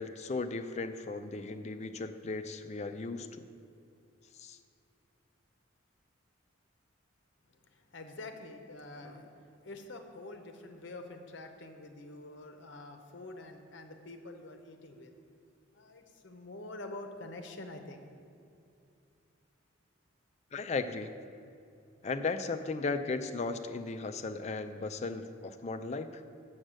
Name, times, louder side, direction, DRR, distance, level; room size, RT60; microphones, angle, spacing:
voice 1, 0.0-3.4 4.4-4.6 20.5-21.1 22.0-26.2, left 3 dB, 35° left, 9 dB, 0.4 m, -36 dB
voice 2, 7.6-9.3 9.6-15.2 15.7-18.1, left 2 dB, 60° left, 5 dB, 0.8 m, -46 dB
6.5 x 6.3 x 7.5 m, 2.5 s
head